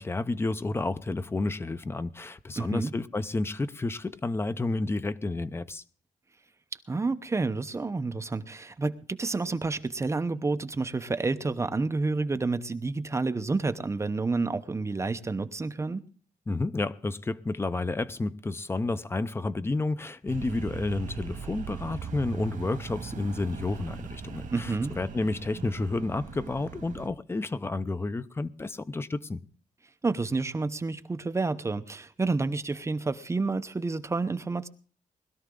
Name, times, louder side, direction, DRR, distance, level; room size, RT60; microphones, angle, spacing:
voice 1, 0.0-5.8 16.5-29.4, left 2 dB, 20° left, 0.6 m, -31 dB
voice 2, 2.6-2.9 6.9-16.0 24.5-25.0 30.0-34.7, right 3 dB, 20° right, 0.9 m, -29 dB
sound 1, 20.3-27.1, right 7 dB, 85° right, 1.8 m, -40 dB
20.5 x 12.5 x 3.8 m
wide cardioid pair, 145°, 13 cm